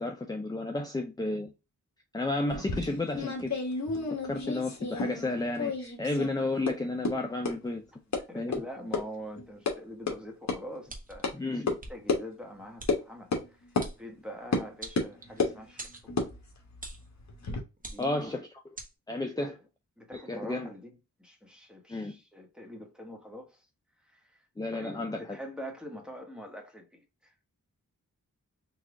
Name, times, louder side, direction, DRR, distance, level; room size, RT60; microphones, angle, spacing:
voice 1, 0.0-1.5 2.1-3.6 4.2-7.8 8.3-8.6 11.3-11.8 18.0-18.4 19.1-19.6 20.1-20.7 21.9-22.1 24.6-25.4, left 2 dB, 10° left, 0.4 m, -32 dB
sound 1, 2.5-5.3 5.6-6.3 6.7-6.8 7.0-7.1 7.4-7.5 8.1-8.2 8.5-8.6 8.9-9.0 9.4-9.7 10.1-10.2 10.5-10.6 11.2-11.3 11.7-11.8 12.1-12.2 12.9-13.0 13.3-13.5 13.8-13.9 14.5-14.7 15.0-15.6 16.1-17.6, left 3 dB, 55° left, 1.1 m, -31 dB
voice 2, 8.3-11.3 11.9-13.6 14.0-16.3 17.8-18.3 19.4-19.5 20.0-20.9 21.2-23.7 24.0-24.4 24.7-27.3, equal, 5° right, 1.1 m, -44 dB
sound 2, 10.9-11.3 11.8-11.9 12.8-12.9 13.8-14.0 14.8-15.4 15.8-16.1 16.8-17.1 17.8-18.2 18.8-18.9, right 2 dB, 25° right, 1.0 m, -43 dB
4.0 x 2.4 x 3.3 m
wide cardioid pair, 105°, 32 cm